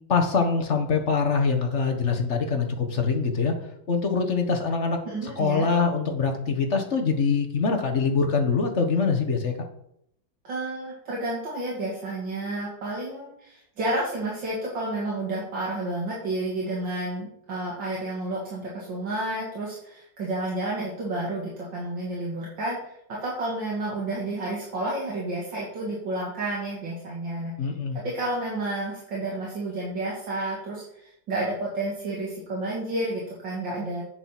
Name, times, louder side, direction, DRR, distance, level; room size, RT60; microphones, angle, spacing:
voice 1, 0.1-3.5 3.9-9.5 27.6-28.0, left 5 dB, 40° left, 4 dB, 1.4 m, -24 dB
voice 2, 5.0-5.7 10.4-27.5 27.9-34.0, right 2 dB, 75° right, -5 dB, 2.9 m, -31 dB
8.7 x 7.0 x 5.9 m, 0.74 s
omnidirectional pair, 2.0 m